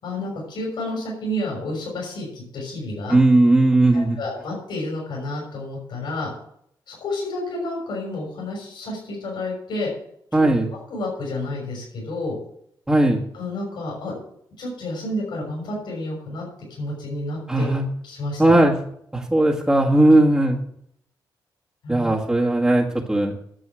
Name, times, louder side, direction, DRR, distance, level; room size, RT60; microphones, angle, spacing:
voice 1, 0.0-3.2 3.9-6.3 6.9-9.9 10.3-10.4 10.9-12.3 13.3-14.2 14.6-16.4 16.8-17.7 18.0-18.4 20.1-20.2 21.8-22.1, left 1 dB, 75° left, -3 dB, 6.2 m, -30 dB
voice 2, 3.1-4.2 10.3-10.7 12.9-13.2 17.5-17.9 18.4-18.8 19.1-20.6 21.9-23.3, right 1 dB, 10° right, -2 dB, 1.6 m, -17 dB
11.0 x 7.7 x 7.6 m, 0.70 s
cardioid pair, 115°, 8 cm